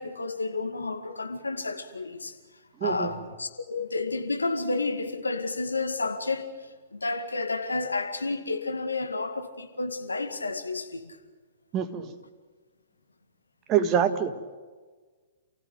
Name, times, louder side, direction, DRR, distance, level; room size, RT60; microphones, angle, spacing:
voice 1, 0.0-2.4 2.8-11.2, left 3 dB, 85° left, 2.1 m, -31 dB
voice 2, 2.8-3.1 11.7-12.1 13.7-14.3, right 8 dB, 30° right, 1.8 m, -25 dB
28.5 x 16.0 x 7.9 m
figure-of-eight pair, 115°, 0 cm